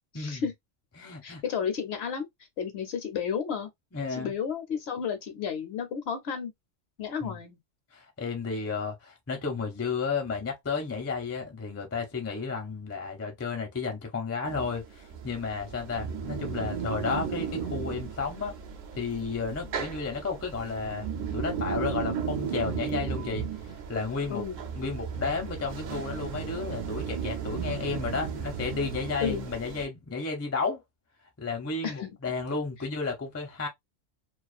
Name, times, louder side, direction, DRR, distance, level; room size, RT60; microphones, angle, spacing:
voice 1, 0.1-0.5 1.2-2.3 2.6-3.7 4.1-6.5 7.0-7.6 24.3-24.6 29.2-29.5 31.8-32.2, left 7 dB, 65° left, 0.8 m, -32 dB
voice 2, 1.0-1.4 3.9-4.3 7.2-7.4 7.9-18.6 19.0-24.4 24.7-30.8 31.4-33.7, left 4 dB, 20° left, 0.4 m, -32 dB
sound 1, 14.4-29.9, right 7 dB, 65° right, 0.4 m, -35 dB
2.4 x 2.3 x 2.3 m
omnidirectional pair, 1.3 m